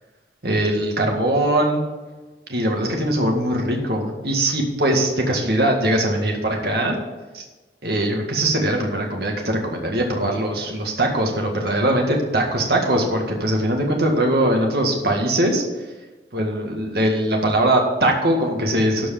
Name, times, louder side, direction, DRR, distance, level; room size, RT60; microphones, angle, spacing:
voice 1, 0.4-1.8 2.5-7.0 7.3-7.4 7.8-15.6 16.3-19.1, right 1 dB, 65° right, 1 dB, 1.9 m, -21 dB
13.0 x 4.7 x 7.6 m, 1.2 s
head